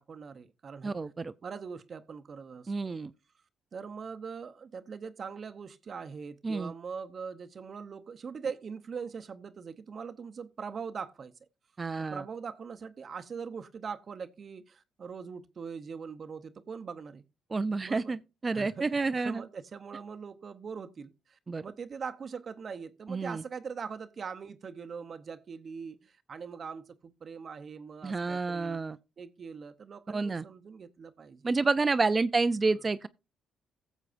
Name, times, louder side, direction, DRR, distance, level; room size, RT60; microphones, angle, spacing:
voice 1, 0.0-1.0 1.4-2.9 3.7-11.3 12.0-17.2 17.8-18.2 18.5-18.8 19.2-28.8 29.2-31.5 32.6-32.8, right 6 dB, 45° right, 0.8 m, -42 dB
voice 2, 0.8-1.3 2.7-3.1 6.4-6.7 11.8-12.2 17.5-19.4 21.5-21.6 23.1-23.4 28.0-29.0 30.1-30.4 31.4-33.1, right 3 dB, 30° right, 0.4 m, -29 dB
16.0 x 7.2 x 2.5 m
cardioid pair, 90°, 0 cm